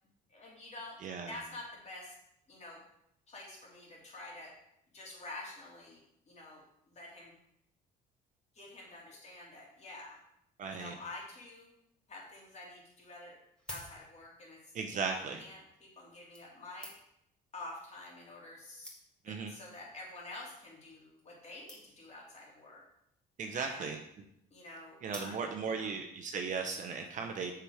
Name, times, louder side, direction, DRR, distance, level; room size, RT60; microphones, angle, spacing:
voice 1, 0.3-1.0 1.3-2.1 2.5-2.8 3.3-4.5 4.9-6.6 6.9-7.3 8.5-10.2 10.7-11.7 12.1-13.4 13.7-14.6 14.9-16.9 17.5-18.9 19.3-22.8 23.5-24.0 24.5-25.9, left 2 dB, 40° left, -3 dB, 3.1 m, -48 dB
voice 2, 1.0-1.4 10.6-10.9 14.7-15.4 19.2-19.5 23.4-24.0 25.0-27.5, right 5 dB, 50° right, 4 dB, 0.8 m, -37 dB
sound 1, 13.4-14.5 15.4-15.5 16.3-17.3 18.1-18.2 18.5-18.6 18.8-19.4 20.1-20.3 20.6-20.7 20.9-21.0 21.2-21.3 21.7-22.2 23.2-23.6 25.1-25.8 26.3-26.4, equal, 5° left, 2.1 m, -50 dB
6.8 x 5.9 x 4.9 m, 0.77 s
cardioid pair, 110°, 17 cm